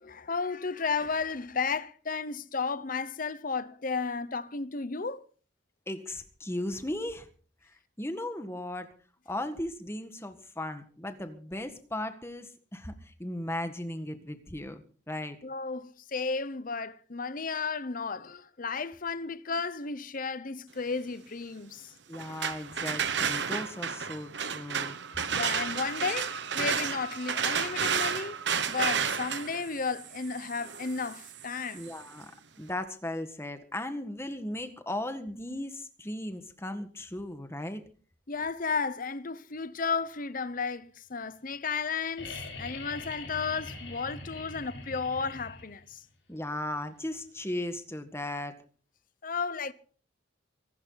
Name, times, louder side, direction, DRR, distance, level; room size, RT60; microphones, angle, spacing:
voice 1, 0.0-5.2 15.4-21.9 25.3-28.4 28.7-31.8 38.3-46.0 49.2-49.7, left 4 dB, 45° left, 0.9 m, -33 dB
voice 2, 5.9-7.3 8.0-8.9 9.2-15.4 22.1-25.0 31.7-32.3 32.6-37.8 46.3-48.6, left 1 dB, 15° left, 1.7 m, -36 dB
sound 1, 22.1-32.0, right 7 dB, 65° right, 1.2 m, -32 dB
sound 2, 42.2-45.9 47.6-47.7, left 3 dB, 70° left, 6.6 m, -42 dB
24.5 x 12.0 x 4.1 m
head